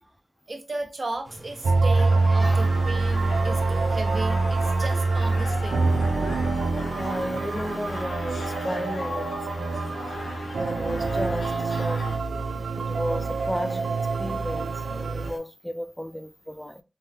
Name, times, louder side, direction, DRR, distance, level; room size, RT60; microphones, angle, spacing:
voice 1, 0.5-5.9, right 2 dB, 55° right, 0.7 m, -35 dB
sound 1, 1.2-15.4, right 1 dB, 35° right, 1.3 m, -44 dB
sound 2, 1.6-15.3, right 3 dB, 85° right, 0.3 m, -25 dB
sound 3, 1.9-12.2, left 3 dB, 85° left, 0.5 m, -39 dB
voice 2, 2.3-2.7 7.0-9.9 10.6-12.2 12.8-16.8, equal, 5° left, 0.4 m, -34 dB
3.4 x 2.1 x 2.8 m
cardioid pair, 45°, 0 cm